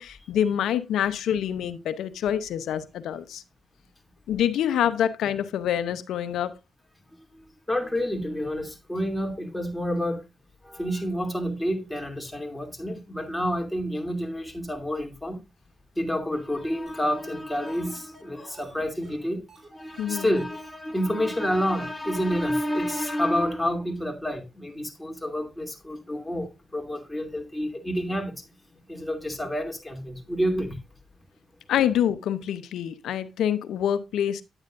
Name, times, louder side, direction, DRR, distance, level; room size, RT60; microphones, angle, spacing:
voice 1, 0.0-3.4 4.3-6.6 20.0-20.3 31.7-34.4, left 10 dB, 80° left, 0.7 m, -26 dB
voice 2, 7.7-10.2 10.6-15.4 16.0-19.4 19.7-28.4 28.9-30.8, equal, 10° left, 2.8 m, -29 dB
sound 1, 16.9-17.0 17.3-17.4 17.7-19.7 20.0-20.1 20.4-20.6 20.9-21.0 21.3-21.5 21.7-21.8 22.2-22.3 22.7-22.8 23.0-23.1, right 2 dB, 40° right, 3.6 m, -50 dB
9.8 x 9.0 x 2.6 m
supercardioid pair, 55°, 0 cm